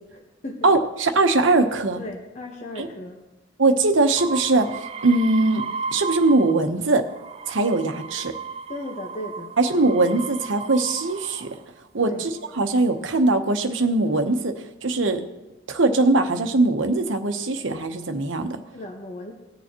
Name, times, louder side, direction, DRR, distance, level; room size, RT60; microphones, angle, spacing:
voice 1, 0.6-2.0 2.8-2.9 3.6-5.6 5.9-7.0 7.5-8.3 9.6-11.5 11.9-15.2 15.7-18.6, right 2 dB, 75° right, 6 dB, 1.0 m, -21 dB
voice 2, 2.0-3.2 8.7-9.5 12.0-12.2 18.7-19.3, left 1 dB, 35° left, 0 dB, 1.1 m, -35 dB
sound 1, 4.2-6.7 7.1-11.6 12.4-12.9, right 5 dB, 30° right, 0.4 m, -35 dB
19.5 x 6.9 x 2.9 m, 1.0 s
head